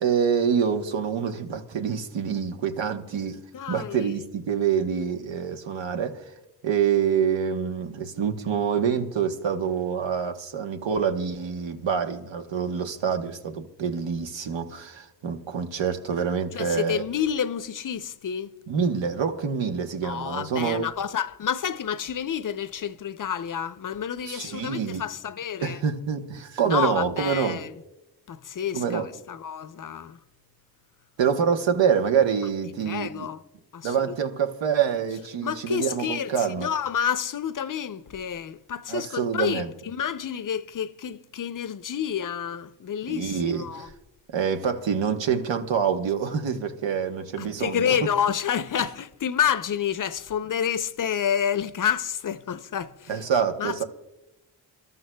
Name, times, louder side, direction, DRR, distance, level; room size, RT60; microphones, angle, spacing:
voice 1, 0.0-3.4 3.7-6.2 6.6-17.0 18.7-20.8 24.2-25.0 25.6-27.6 28.7-29.1 31.2-33.3 33.8-36.7 38.9-39.7 43.1-43.9 44.3-48.0 53.1-53.8, right 7 dB, 85° right, 1.1 m, -26 dB
voice 2, 3.5-4.1 16.5-18.5 20.0-25.8 26.6-27.7 28.3-30.2 32.8-33.4 33.7-34.2 35.4-43.9 47.4-53.3 53.6-53.8, left 8 dB, 45° left, 0.6 m, -29 dB
28.0 x 12.5 x 2.2 m
cardioid pair, 75°, 44 cm